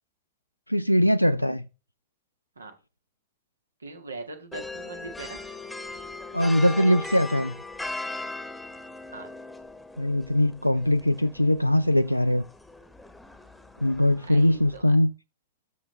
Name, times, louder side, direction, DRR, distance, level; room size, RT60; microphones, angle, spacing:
voice 1, 0.7-1.7 6.3-7.6 10.0-12.4 13.8-15.1, left 1 dB, 90° left, 0.4 m, -21 dB
voice 2, 3.8-5.4 9.1-9.3 14.3-14.9, right 3 dB, 75° right, 1.7 m, -41 dB
sound 1, 4.5-14.8, left 2 dB, 5° left, 1.1 m, -39 dB
13.0 x 5.8 x 3.3 m
figure-of-eight pair, 90°, 0 cm